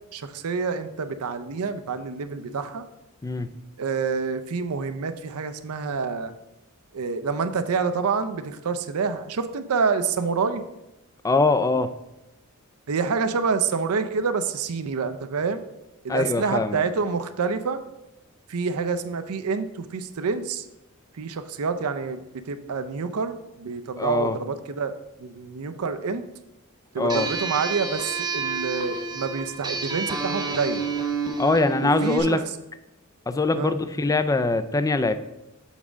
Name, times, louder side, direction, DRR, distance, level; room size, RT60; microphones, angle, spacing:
voice 1, 0.1-2.8 3.8-6.3 6.9-10.6 12.9-15.6 16.0-17.8 18.5-20.7 21.1-24.9 25.2-26.2 26.9-30.9 31.8-32.5 33.6-33.8, right 5 dB, 75° right, 9 dB, 0.5 m, -27 dB
voice 2, 3.2-3.5 11.2-11.9 16.1-16.8 24.0-24.4 27.0-27.3 31.4-32.4 33.3-35.2, left 3 dB, 15° left, 11 dB, 0.3 m, -22 dB
sound 1, 27.1-32.2, right 5 dB, 20° right, 0.9 m, -29 dB
7.2 x 3.6 x 5.0 m, 0.93 s
head